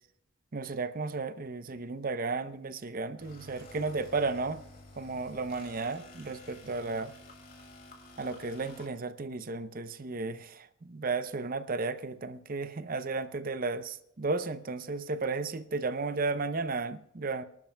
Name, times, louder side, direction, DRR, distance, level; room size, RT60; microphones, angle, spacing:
voice 1, 0.5-4.6 5.0-7.1 8.2-17.4, right 3 dB, 45° right, 0.6 m, -34 dB
sound 1, 3.2-8.9, left 2 dB, 45° left, 3.0 m, -51 dB
29.0 x 12.0 x 2.2 m
head